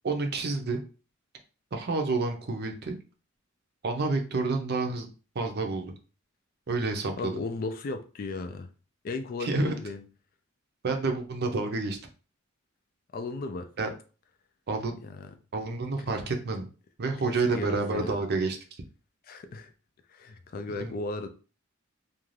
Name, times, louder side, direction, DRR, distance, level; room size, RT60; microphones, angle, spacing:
voice 1, 0.0-0.8 1.7-3.0 3.8-5.1 5.3-5.9 6.7-7.3 9.4-9.7 10.8-12.0 13.8-13.9 14.7-14.9 15.5-16.7 17.0-18.6 20.8-20.9, right 3 dB, 50° right, 0.5 m, -29 dB
voice 2, 7.2-8.7 9.0-10.0 13.1-13.7 15.1-15.2 17.2-18.2 19.3-19.7 20.1-21.3, left 3 dB, 45° left, 0.3 m, -35 dB
2.5 x 2.3 x 3.1 m
head